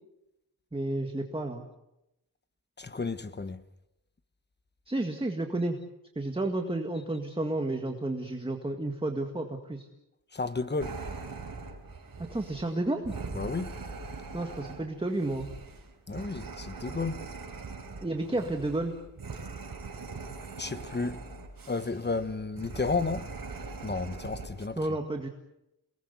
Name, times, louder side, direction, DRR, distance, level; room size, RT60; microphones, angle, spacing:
voice 1, 0.7-1.6 4.9-5.8 6.2-9.9 12.3-13.1 14.3-15.5 18.0-18.9 24.8-25.3, right 2 dB, 15° right, 1.9 m, -31 dB
voice 2, 2.8-3.6 10.3-11.0 13.3-13.7 16.1-17.2 20.6-21.2 21.7-23.2 23.8-24.8, left 3 dB, 25° left, 1.1 m, -32 dB
sound 1, 10.8-24.7, right 4 dB, 55° right, 5.1 m, -42 dB
29.0 x 20.0 x 8.2 m
wide cardioid pair, 165°, 41 cm